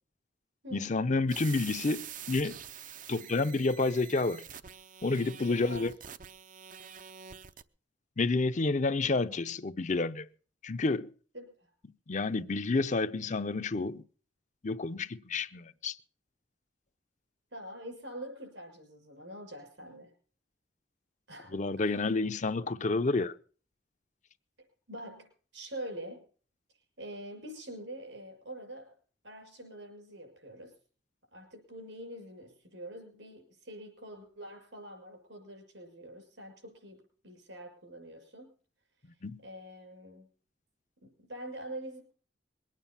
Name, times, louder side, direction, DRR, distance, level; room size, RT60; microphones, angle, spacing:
voice 1, 0.7-2.6 3.1-4.5 5.0-5.9 8.2-10.3 10.6-11.1 12.1-14.0 14.6-16.0 21.5-23.3 39.0-39.4, left 3 dB, 40° left, 0.6 m, -29 dB
sound 1, 1.3-7.6, right 8 dB, 45° right, 0.6 m, -46 dB
voice 2, 5.4-5.9 11.3-11.7 17.5-20.1 21.3-22.2 24.9-26.3 27.0-28.9 29.2-30.8 31.3-38.5 39.4-40.3 41.0-42.0, right 1 dB, 75° right, 6.5 m, -45 dB
22.0 x 9.1 x 5.7 m
head